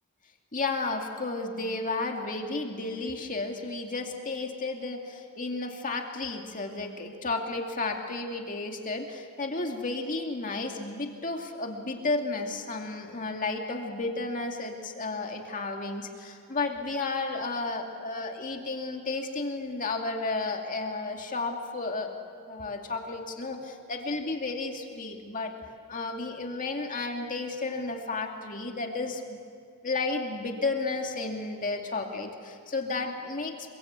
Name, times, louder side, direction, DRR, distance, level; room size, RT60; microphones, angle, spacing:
voice 1, 0.5-22.2 22.5-25.5 25.9-29.4 29.8-33.7, left 3 dB, 40° left, 2 dB, 2.4 m, -32 dB
28.0 x 23.0 x 8.3 m, 2.2 s
head